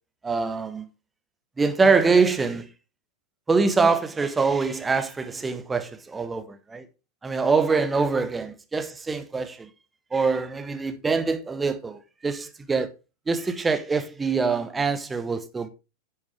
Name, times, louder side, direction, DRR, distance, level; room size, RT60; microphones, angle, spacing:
voice 1, 0.2-0.8 1.6-2.7 3.5-6.9 7.2-9.7 10.1-12.9 13.3-15.7, right 4 dB, 15° right, 1.1 m, -24 dB
10.5 x 7.0 x 3.3 m
figure-of-eight pair, 90°, 0 cm